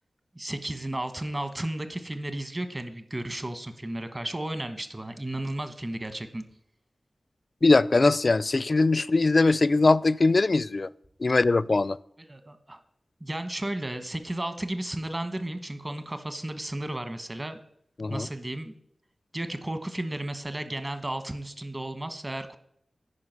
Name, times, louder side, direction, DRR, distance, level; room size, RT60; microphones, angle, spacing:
voice 1, 0.3-6.4 12.2-12.8 13.2-17.6 18.1-18.7 19.3-22.6, right 1 dB, 30° right, 1.2 m, -33 dB
voice 2, 7.6-10.9 11.2-12.0 18.0-18.3, left 3 dB, 50° left, 0.4 m, -21 dB
9.6 x 5.7 x 8.0 m
wide cardioid pair, 80°, 0 cm